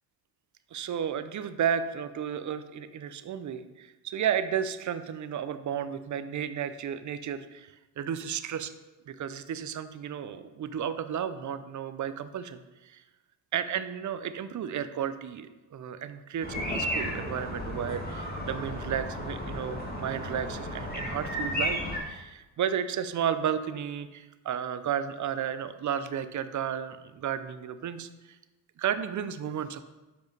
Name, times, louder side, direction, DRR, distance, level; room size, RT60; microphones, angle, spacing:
voice 1, 0.7-8.7 9.1-13.0 13.5-28.4 28.8-29.8, right 8 dB, 40° right, 12 dB, 0.6 m, -33 dB
sound 1, 16.4-22.0, equal, 20° left, 2.1 m, -33 dB
7.3 x 5.1 x 4.6 m, 1.1 s
supercardioid pair, 75°, 47 cm